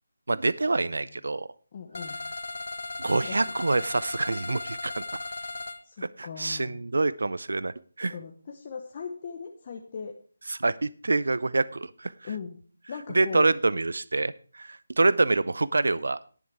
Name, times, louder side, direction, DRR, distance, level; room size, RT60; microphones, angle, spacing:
voice 1, 0.3-1.5 3.0-5.3 6.2-8.1 10.5-12.3 13.1-16.2, right 3 dB, 75° right, 18 dB, 0.5 m, -26 dB
voice 2, 1.7-2.2 3.2-3.4 5.8-6.8 8.1-10.2 12.2-12.6 12.9-13.5, left 6 dB, 35° left, 2 dB, 1.0 m, -38 dB
sound 1, 1.9-5.8, left 3 dB, 70° left, 1.4 m, -36 dB
11.0 x 9.3 x 4.8 m, 0.41 s
figure-of-eight pair, 165°, 0 cm